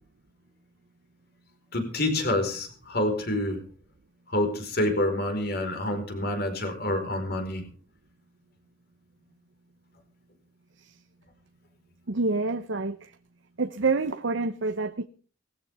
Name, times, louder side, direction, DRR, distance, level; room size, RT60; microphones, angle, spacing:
voice 1, 1.7-3.6 4.3-7.6, left 1 dB, 55° left, 4.7 m, -27 dB
voice 2, 12.1-13.1 13.6-15.0, right 3 dB, 75° right, 0.8 m, -27 dB
19.5 x 15.5 x 3.6 m
head